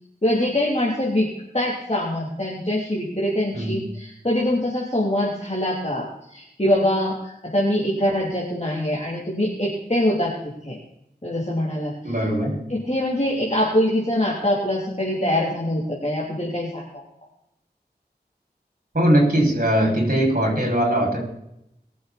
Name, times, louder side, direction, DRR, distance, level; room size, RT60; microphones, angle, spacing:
voice 1, 0.2-1.3 1.5-10.3 10.6-10.8 11.2-12.1 12.7-17.0, left 1 dB, 40° left, -5 dB, 3.3 m, -24 dB
voice 2, 12.0-12.6 18.9-21.2, right 1 dB, 55° right, -1 dB, 6.3 m, -20 dB
22.0 x 7.7 x 4.3 m, 0.80 s
wide cardioid pair, 40°, 17 cm